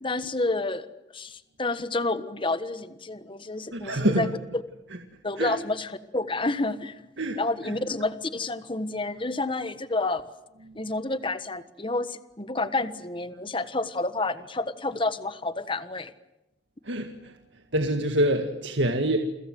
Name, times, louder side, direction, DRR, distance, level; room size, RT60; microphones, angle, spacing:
voice 1, 0.0-0.9 1.1-4.3 4.5-4.6 5.2-7.0 7.3-10.2 10.7-16.1, left 2 dB, 25° left, 12 dB, 1.4 m, -29 dB
voice 2, 3.7-4.3 4.9-5.0 5.4-5.6 7.2-7.8 16.9-17.3 17.7-19.2, right 1 dB, 70° right, 5 dB, 2.0 m, -26 dB
29.5 x 23.5 x 7.8 m, 0.93 s
head